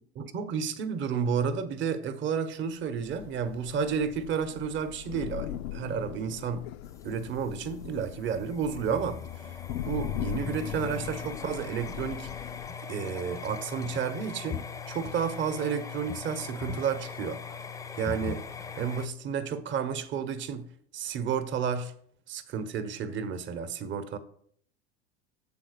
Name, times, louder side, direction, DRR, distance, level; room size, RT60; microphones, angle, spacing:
voice 1, 0.2-6.7 7.0-9.5 9.8-12.3 12.8-17.4 18.0-18.5 18.8-21.9 22.3-24.2, right 6 dB, 35° right, 0.9 m, -31 dB
Thunder / Rain, 3.0-12.7, left 13 dB, 70° left, 0.5 m, -40 dB
sound 1, 6.8-19.1, left 6 dB, 10° left, 0.4 m, -40 dB
7.4 x 4.0 x 6.5 m
hypercardioid pair, 95°, 33 cm